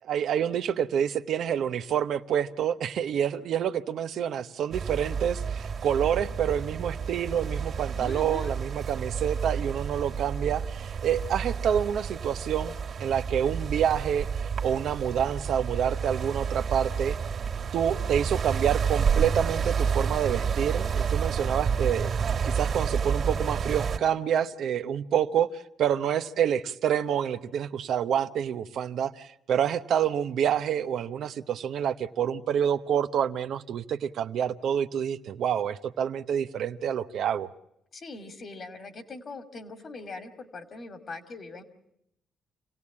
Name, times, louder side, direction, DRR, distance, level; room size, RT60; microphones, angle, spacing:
voice 1, 0.0-12.7 13.0-14.3 14.6-17.2 17.7-22.1 22.4-37.5, right 9 dB, 70° right, 9 dB, 0.8 m, -27 dB
sound 1, 4.7-24.0, right 6 dB, 50° right, 2.1 m, -30 dB
voice 2, 7.9-8.5 37.9-41.6, left 3 dB, 45° left, 8 dB, 2.5 m, -41 dB
27.5 x 17.0 x 8.6 m, 0.79 s
cardioid pair, 90°, 0 cm